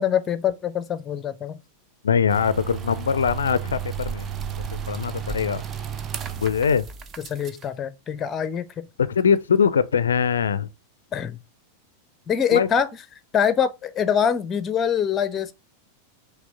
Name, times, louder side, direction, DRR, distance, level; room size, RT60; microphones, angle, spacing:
voice 1, 0.0-1.6 7.2-8.7 11.1-11.4 12.3-12.9 13.3-15.5, left 8 dB, 25° left, 0.7 m, -24 dB
voice 2, 2.0-4.3 4.7-5.6 6.4-6.9 9.0-10.7 12.5-12.7, left 7 dB, 70° left, 0.4 m, -22 dB
sound 1, 2.3-7.7, right 8 dB, 25° right, 0.7 m, -33 dB
6.1 x 3.2 x 5.2 m
figure-of-eight pair, 90°, 0 cm